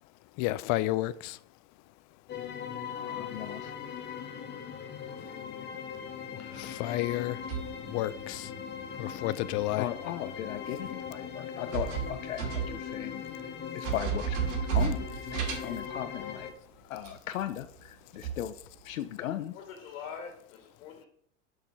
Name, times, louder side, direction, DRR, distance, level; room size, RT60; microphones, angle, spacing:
voice 1, 0.4-1.4 5.5-5.6 6.3-7.4 7.8-8.5 9.0-9.9, left 16 dB, 45° left, 0.5 m, -31 dB
sound 1, 2.3-16.5, left 7 dB, 25° left, 1.0 m, -40 dB
voice 2, 2.8-3.7 5.1-5.4 9.8-13.2 13.7-14.4 14.7-15.1 15.6-16.5 16.8-18.6 18.8-19.6, left 12 dB, 90° left, 0.6 m, -37 dB
sound 2, 6.7-8.4 9.5-9.7 10.5-10.6 11.6-13.0 13.3-13.4 13.8-16.3 17.0-17.2 17.6-17.8 18.1-18.9, right 7 dB, 70° right, 2.3 m, -33 dB
voice 3, 19.5-21.1, left 6 dB, 65° left, 1.9 m, -44 dB
6.8 x 4.9 x 5.5 m
hypercardioid pair, 105°, 39 cm